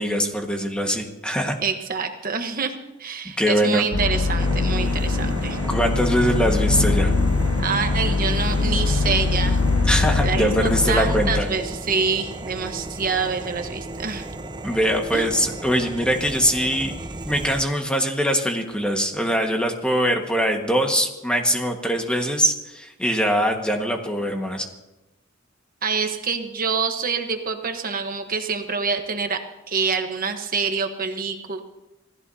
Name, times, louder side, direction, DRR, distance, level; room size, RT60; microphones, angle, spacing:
voice 1, 0.0-1.6 3.4-3.9 5.7-7.1 9.9-11.5 14.6-16.9 17.2-24.7, equal, 5° left, 2 dB, 1.6 m, -22 dB
voice 2, 1.6-2.7 3.0-5.6 7.6-9.6 10.2-14.3 15.1-15.3 25.8-29.4 29.7-31.6, right 5 dB, 45° right, 5 dB, 1.2 m, -26 dB
sound 1, 3.9-11.4, left 3 dB, 70° left, 0.8 m, -22 dB
sound 2, 4.4-17.6, right 2 dB, 20° right, 0.9 m, -35 dB
26.5 x 17.0 x 2.8 m, 1.0 s
head